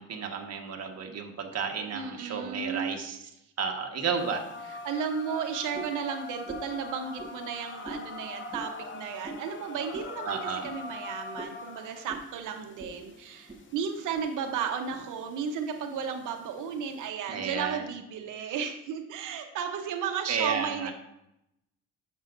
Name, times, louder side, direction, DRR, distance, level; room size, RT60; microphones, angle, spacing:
voice 1, 0.0-3.2 3.6-4.4 10.2-10.7 17.3-17.9 20.3-20.9, right 6 dB, 55° right, 3 dB, 1.5 m, -32 dB
voice 2, 1.9-2.9 4.7-20.9, right 7 dB, 85° right, 5 dB, 0.9 m, -34 dB
sound 1, 4.2-17.1, left 3 dB, 40° left, 0.8 m, -43 dB
sound 2, 5.7-6.0 6.4-6.8 7.2-7.3 7.8-8.1 8.5-8.7 9.2-9.5 9.9-10.1 10.6-10.8 11.4-11.6 12.1-12.3 12.8-13.0 13.3-13.6 14.2-14.3 14.9-15.0, right 3 dB, 15° right, 1.4 m, -41 dB
11.0 x 7.1 x 2.6 m, 0.84 s
cardioid pair, 90°, 30 cm